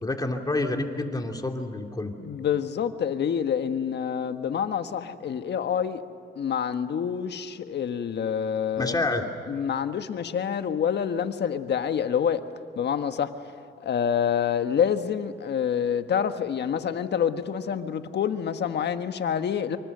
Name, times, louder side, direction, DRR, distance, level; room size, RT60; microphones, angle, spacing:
voice 1, 0.0-2.1 8.8-9.3, left 2 dB, 20° left, 2.8 m, -28 dB
voice 2, 2.2-6.0 6.3-12.4 12.7-13.5 13.8-19.8, left 8 dB, 60° left, 1.5 m, -27 dB
25.5 x 24.0 x 6.8 m
cardioid pair, 90°, 20 cm